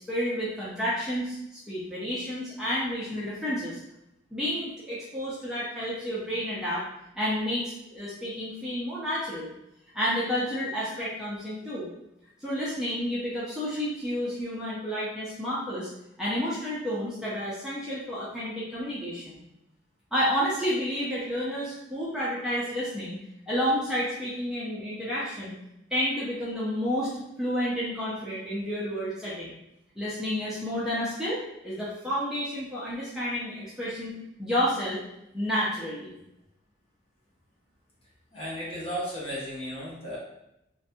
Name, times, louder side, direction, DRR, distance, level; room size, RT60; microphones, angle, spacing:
voice 1, 0.1-1.4 1.7-3.8 4.3-6.8 7.2-9.5 9.9-11.9 12.4-15.9 16.2-19.4 20.1-23.2 23.5-25.6 25.9-27.1 27.4-29.6 30.0-31.4 31.6-35.0 35.3-36.1, equal, 5° right, -9 dB, 0.5 m, -30 dB
voice 2, 38.3-40.2, equal, 30° left, -6 dB, 0.8 m, -34 dB
2.5 x 2.2 x 2.6 m, 0.85 s
head